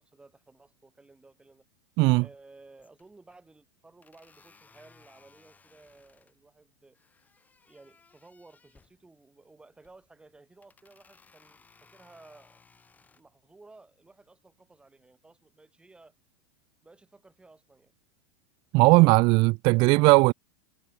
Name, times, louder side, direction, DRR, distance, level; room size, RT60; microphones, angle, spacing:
voice 1, 0.0-1.7 2.2-7.0 7.6-12.6 13.1-16.1 16.8-17.9, right 3 dB, 5° right, 7.3 m, -56 dB
sound 1, 2.5-2.6 2.8-3.4 4.0-6.4 6.9-9.0 9.7-10.1 10.6-13.2, left 4 dB, 10° left, 5.4 m, -61 dB
voice 2, 18.7-20.3, right 25 dB, 40° right, 0.4 m, -18 dB
supercardioid pair, 150°, 13 cm